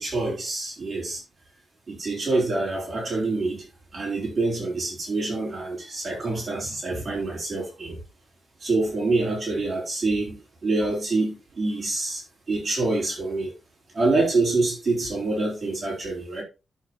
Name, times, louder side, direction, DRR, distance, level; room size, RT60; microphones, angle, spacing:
voice 1, 0.0-1.2 1.9-3.7 3.9-8.0 8.6-10.4 10.6-13.5 13.9-16.4, right 3 dB, 35° right, 3.7 m, -26 dB
9.9 x 7.0 x 3.0 m
wide cardioid pair, 135°, 0 cm